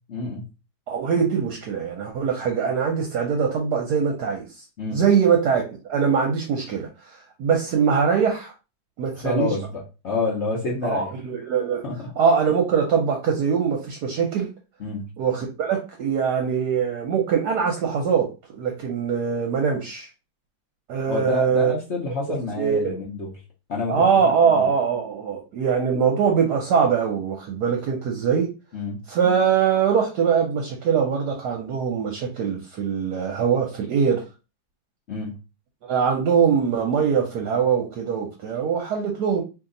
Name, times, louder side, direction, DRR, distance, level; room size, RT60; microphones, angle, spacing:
voice 1, 0.1-0.4 4.8-5.0 9.2-11.1 11.8-12.1 14.8-15.1 21.1-23.3 23.7-24.0 24.4-24.6 28.7-29.0 35.1-35.4, left 3 dB, 60° left, -3 dB, 0.7 m, -28 dB
voice 2, 0.9-4.6 4.9-8.5 9.0-9.5 10.8-11.8 12.2-14.5 15.2-18.3 18.6-20.1 20.9-21.7 22.6-22.9 23.9-28.5 29.1-34.2 35.8-39.4, right 6 dB, 65° right, 2 dB, 1.1 m, -22 dB
2.9 x 2.8 x 3.8 m, 0.31 s
omnidirectional pair, 2.1 m